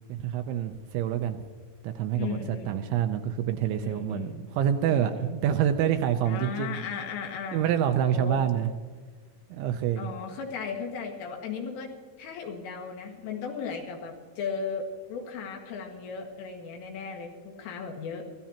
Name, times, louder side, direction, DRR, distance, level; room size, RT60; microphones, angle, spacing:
voice 1, 0.1-1.4 1.8-6.7 7.5-8.7 9.5-10.1, right 9 dB, 80° right, 7 dB, 2.8 m, -27 dB
voice 2, 2.2-2.9 3.8-4.4 4.9-5.4 6.3-7.7 8.1-8.4 10.0-11.9 12.2-18.2, left 5 dB, 75° left, 1 dB, 4.4 m, -36 dB
23.0 x 15.0 x 2.9 m, 1.5 s
omnidirectional pair, 5.8 m